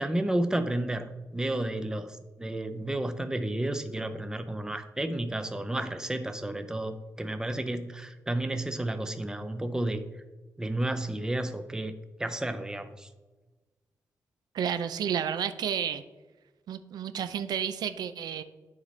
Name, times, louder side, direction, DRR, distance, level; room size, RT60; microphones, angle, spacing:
voice 1, 0.0-10.0 10.6-11.9 12.2-13.1, right 1 dB, 10° right, 8 dB, 0.5 m, -31 dB
voice 2, 14.5-16.0 16.7-18.4, right 8 dB, 85° right, 11 dB, 0.4 m, -31 dB
9.9 x 4.0 x 3.2 m, 1.2 s
cardioid pair, 110°, 7 cm